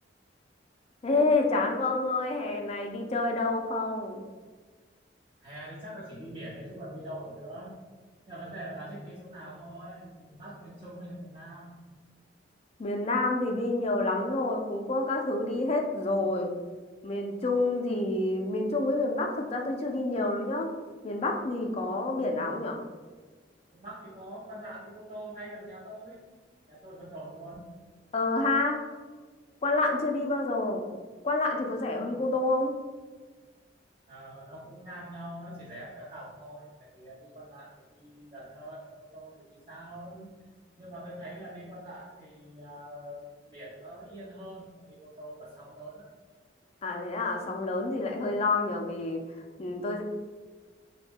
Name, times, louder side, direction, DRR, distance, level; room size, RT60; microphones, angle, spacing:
voice 1, 1.0-4.2 12.8-16.5 17.0-20.7 21.0-22.8 28.1-28.8 29.6-30.8 31.2-32.7 46.8-49.2 49.6-50.0, left 2 dB, 35° left, 2 dB, 0.4 m, -28 dB
voice 2, 5.4-7.8 8.3-11.8 23.7-26.2 26.7-27.7 34.1-40.3 40.8-46.1, right 1 dB, 30° right, -8 dB, 0.6 m, -44 dB
3.3 x 2.1 x 3.3 m, 1.4 s
head